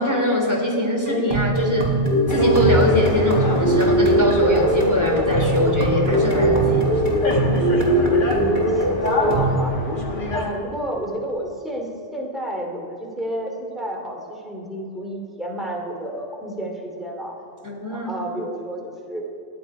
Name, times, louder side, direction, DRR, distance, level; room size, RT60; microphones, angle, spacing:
voice 1, 0.0-1.9 2.3-6.8 10.4-10.5 17.6-18.1, equal, 15° right, -1 dB, 3.1 m, -23 dB
sound 1, 1.1-9.6, right 1 dB, 60° right, 3.4 m, -20 dB
sound 2, 2.3-10.5, left 2 dB, 50° left, 1.9 m, -25 dB
voice 2, 8.3-8.8 9.2-9.7 10.3-17.3 17.9-19.2, right 1 dB, ahead, -1 dB, 2.6 m, -30 dB
29.0 x 9.9 x 4.9 m, 2.6 s
omnidirectional pair, 1.1 m